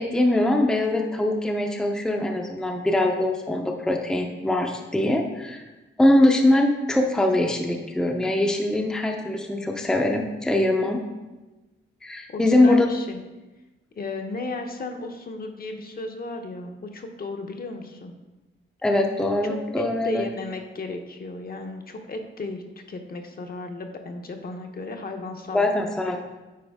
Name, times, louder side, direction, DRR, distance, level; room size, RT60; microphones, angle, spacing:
voice 1, 0.0-5.6 6.0-11.0 12.0-12.9 18.8-20.2 25.5-26.2, left 1 dB, 5° left, 2 dB, 0.5 m, -22 dB
voice 2, 12.3-13.2 14.0-18.1 19.5-22.6 22.9-25.6 26.0-26.2, left 3 dB, 45° left, 4 dB, 0.7 m, -34 dB
9.3 x 4.3 x 3.5 m, 1.1 s
wide cardioid pair, 140°, 21 cm